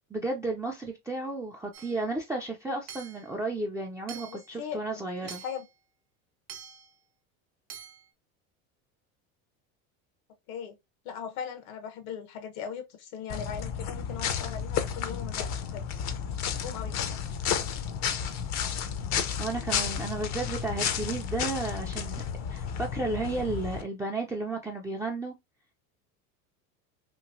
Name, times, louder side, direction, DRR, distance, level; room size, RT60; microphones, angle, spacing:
voice 1, 0.1-5.4 19.4-22.2 22.5-25.3, right 2 dB, 10° right, 0.4 m, -33 dB
Hammer / Chink clink, 1.7-2.1 2.9-3.3 4.1-4.5 5.3-5.7 6.5-6.9 7.7-8.1, right 9 dB, 85° right, 0.8 m, -45 dB
voice 2, 4.1-5.6 10.5-10.8 11.0-15.9 16.5-17.0 20.2-20.3, left 7 dB, 80° left, 1.0 m, -39 dB
sound 1, 13.3-23.8, left 8 dB, 45° left, 0.5 m, -32 dB
3.0 x 2.6 x 2.5 m
supercardioid pair, 100°, 41 cm